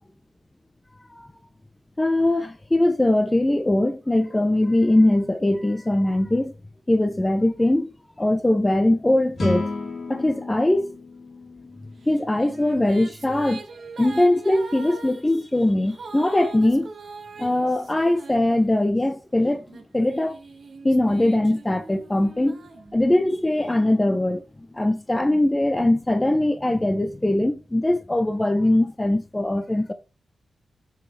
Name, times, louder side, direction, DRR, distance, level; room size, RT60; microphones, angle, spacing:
voice 1, 2.0-6.5 6.9-7.9 8.2-9.7 10.1-10.9 12.1-13.6 14.0-16.9 17.4-20.4 20.8-22.6 22.9-24.4 24.7-29.9, left 1 dB, 10° left, 0.6 m, -21 dB
sound 1, 9.4-12.7, left 2 dB, 45° left, 2.4 m, -32 dB
Female singing, 12.1-19.0 19.7-23.4, right 4 dB, 50° right, 1.3 m, -42 dB
7.1 x 6.1 x 3.2 m
wide cardioid pair, 165°, 0 cm